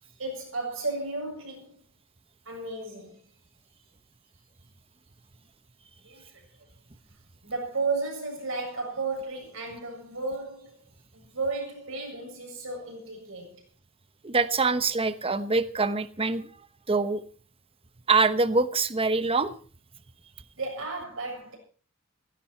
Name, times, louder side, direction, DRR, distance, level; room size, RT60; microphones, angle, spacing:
voice 1, 0.0-1.8 2.5-3.2 6.0-6.7 7.4-10.8 11.1-13.6 20.6-21.6, right 3 dB, 70° right, 7.2 m, -34 dB
voice 2, 14.2-16.5 16.9-17.2 18.1-19.5, right 4 dB, 30° right, 1.0 m, -24 dB
16.5 x 16.0 x 4.5 m
head